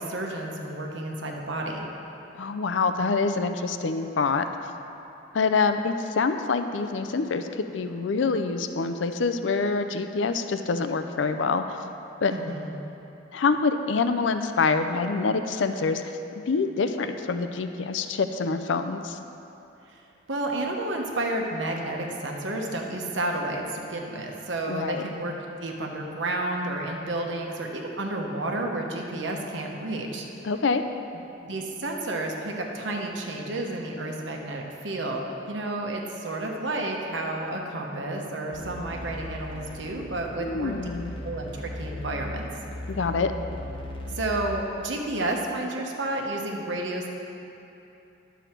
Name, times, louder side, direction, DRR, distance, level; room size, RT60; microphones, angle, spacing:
voice 1, 0.0-1.9 12.3-12.7 19.9-20.0 20.3-25.3 25.6-30.3 31.4-40.8 41.2-42.5 44.1-47.1, right 2 dB, 75° right, 1 dB, 1.1 m, -31 dB
voice 2, 2.3-4.5 5.3-11.6 12.2-12.3 13.3-16.0 16.5-19.2 24.7-25.0 30.4-30.8 40.4-41.1 42.9-43.3, left 4 dB, 75° left, 8 dB, 0.5 m, -26 dB
sound 1, 38.5-44.5, left 1 dB, 25° left, 0.8 m, -37 dB
11.5 x 7.0 x 4.5 m, 2.9 s
head